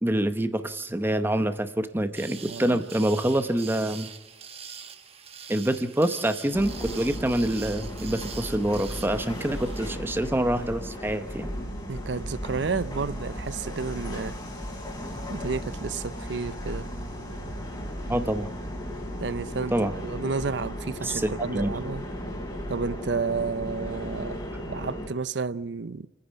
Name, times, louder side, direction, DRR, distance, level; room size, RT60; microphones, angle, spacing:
voice 1, 0.0-4.1 5.5-11.5 18.1-18.5 19.7-19.9 21.0-21.7, right 1 dB, 10° right, 0.8 m, -26 dB
sound 1, 2.1-10.0, right 7 dB, 35° right, 1.2 m, -44 dB
voice 2, 2.3-2.8 11.9-14.3 15.3-16.9 19.2-19.7 20.0-22.1 22.7-26.1, right 4 dB, 70° right, 0.6 m, -31 dB
sound 2, 6.5-25.1, equal, 25° left, 3.5 m, -35 dB
29.5 x 9.9 x 8.9 m
head